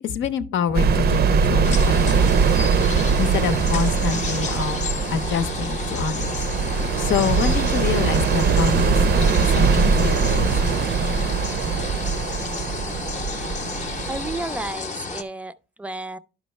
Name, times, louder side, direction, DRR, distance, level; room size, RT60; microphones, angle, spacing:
voice 1, 0.0-2.6 3.2-6.5 7.0-10.6, left 7 dB, 75° left, 0.7 m, -26 dB
sound 1, 0.7-14.7, right 5 dB, 55° right, 0.6 m, -21 dB
sound 2, 1.6-15.2, left 4 dB, 40° left, 0.7 m, -32 dB
voice 2, 14.1-16.2, right 2 dB, 5° right, 0.4 m, -32 dB
11.0 x 5.2 x 3.1 m
cardioid pair, 90°, 20 cm